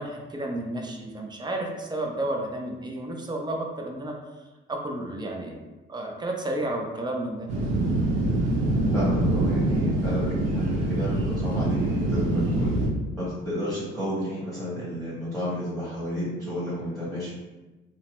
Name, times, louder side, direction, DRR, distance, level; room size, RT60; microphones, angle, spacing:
voice 1, 0.0-4.1 4.7-7.5, right 1 dB, 20° right, 1 dB, 0.5 m, -32 dB
sound 1, 7.5-12.9, right 1 dB, 90° right, 0.5 m, -24 dB
voice 2, 8.9-12.7 13.2-17.4, left 1 dB, ahead, -10 dB, 1.2 m, -31 dB
2.8 x 2.1 x 2.9 m, 1.1 s
cardioid pair, 90°, 20 cm